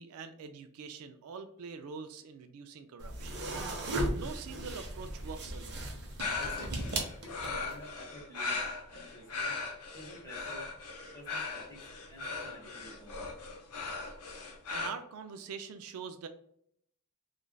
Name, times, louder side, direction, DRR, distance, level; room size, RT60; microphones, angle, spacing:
voice 1, 0.0-3.5 4.1-5.8 14.7-16.3, right 5 dB, 75° right, 9 dB, 0.3 m, -44 dB
sound 1, 3.0-7.8, right 1 dB, 50° right, 0.7 m, -36 dB
sound 2, 6.2-14.9, left 4 dB, 85° left, 0.6 m, -38 dB
voice 2, 6.4-7.0 7.2-9.5 9.9-10.7 11.1-11.8 12.1-13.2, equal, 15° left, -4 dB, 1.1 m, -50 dB
3.2 x 2.4 x 2.2 m, 0.67 s
head